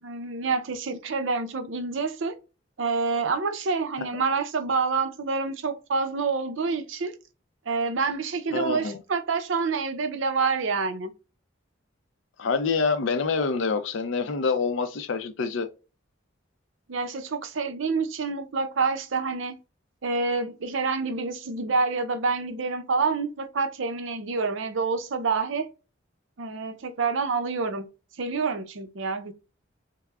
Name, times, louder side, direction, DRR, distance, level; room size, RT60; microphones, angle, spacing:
voice 1, 0.0-2.3 2.8-7.1 7.7-11.1 16.9-19.6 20.0-25.7 26.4-27.9 28.2-29.3, right 4 dB, 65° right, 0.6 m, -27 dB
voice 2, 8.5-9.0 12.4-15.7, left 4 dB, 65° left, 0.5 m, -26 dB
5.7 x 2.0 x 2.3 m
head